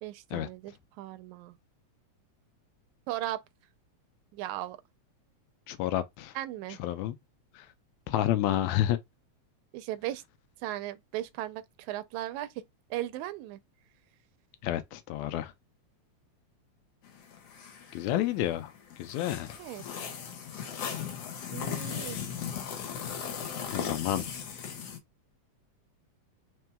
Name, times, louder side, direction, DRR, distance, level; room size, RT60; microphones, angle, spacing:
voice 1, 0.0-1.5 3.1-3.4 4.3-4.8 6.4-6.8 9.7-10.2 10.6-12.5 12.9-13.6 19.6-19.8 21.5-22.2, right 14 dB, 90° right, 2.0 m, -37 dB
voice 2, 5.7-6.4 6.8-7.2 7.5-7.7 8.1-9.0 14.6-15.5 17.9-19.6 23.7-24.3, left 13 dB, 80° left, 1.8 m, -30 dB
sound 1, 17.0-25.0, left 7 dB, 65° left, 1.9 m, -38 dB
4.5 x 3.8 x 2.2 m
omnidirectional pair, 3.3 m